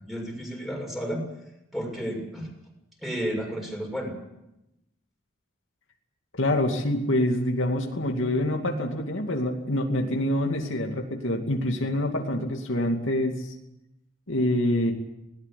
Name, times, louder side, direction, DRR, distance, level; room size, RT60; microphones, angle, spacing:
voice 1, 0.1-1.2 1.7-2.5 3.0-4.1, equal, ahead, 0 dB, 6.6 m, -32 dB
voice 2, 6.4-13.5 14.3-14.9, left 1 dB, 70° left, 2 dB, 2.6 m, -26 dB
20.5 x 19.0 x 8.5 m, 0.90 s
head